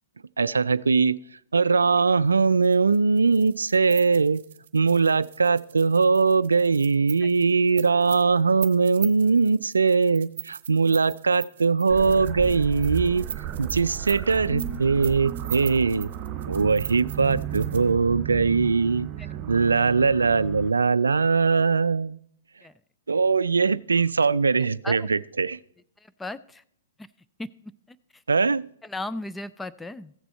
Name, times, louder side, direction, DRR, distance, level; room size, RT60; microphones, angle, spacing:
voice 1, 0.4-1.2 1.5-4.4 4.7-13.3 13.6-16.1 16.5-19.1 19.5-22.2 23.1-25.6 28.3-28.6, right 4 dB, 85° right, 0.3 m, -21 dB
sound 1, 2.5-17.9, right 9 dB, 60° right, 0.9 m, -40 dB
sound 2, 11.9-20.7, right 10 dB, 30° right, 0.8 m, -33 dB
voice 2, 26.0-26.6 27.4-28.2 28.8-30.1, left 2 dB, 5° left, 0.3 m, -36 dB
15.0 x 6.8 x 4.3 m
hypercardioid pair, 120°, 0 cm